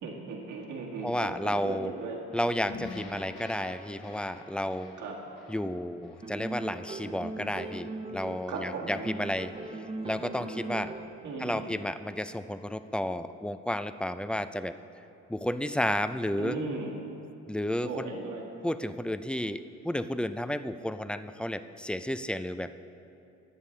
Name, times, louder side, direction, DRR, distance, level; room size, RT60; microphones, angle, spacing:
voice 1, 0.0-2.2 5.0-5.2 8.4-8.9 11.2-11.7 16.4-16.9 17.8-18.5, right 3 dB, 80° right, -1 dB, 1.9 m, -37 dB
voice 2, 1.0-1.9 2.3-5.0 5.5-9.5 10.0-10.9 11.4-14.7 15.3-16.6 17.5-18.1 18.6-22.7, left 1 dB, 5° left, 11 dB, 0.3 m, -32 dB
sound 1, 2.7-7.0, left 3 dB, 85° left, 1.7 m, -46 dB
sound 2, 6.2-8.6 8.9-11.3, right 2 dB, 20° right, 0.9 m, -39 dB
20.5 x 7.3 x 3.3 m, 2.7 s
cardioid pair, 90°, 30 cm